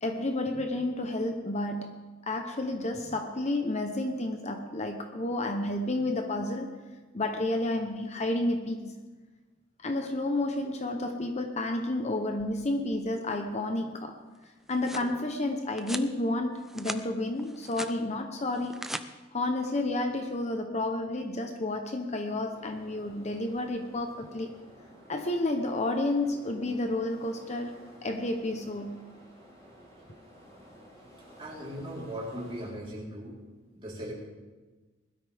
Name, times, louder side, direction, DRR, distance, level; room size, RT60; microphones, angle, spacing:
voice 1, 0.0-6.7 7.1-8.9 9.8-14.2 14.7-18.8 19.3-24.5 25.1-27.7 28.0-29.0, left 2 dB, 35° left, 5 dB, 0.9 m, -31 dB
sound 1, 14.4-15.1 15.8-16.1 16.6-17.0 17.4-18.0 18.5-19.0, right 1 dB, ahead, 0.5 m, -39 dB
sound 2, 22.5-32.8, equal, 20° left, 4.9 m, -53 dB
voice 2, 31.4-33.4 33.8-34.1, equal, 25° right, -5 dB, 3.9 m, -38 dB
20.5 x 12.5 x 3.5 m, 1.3 s
head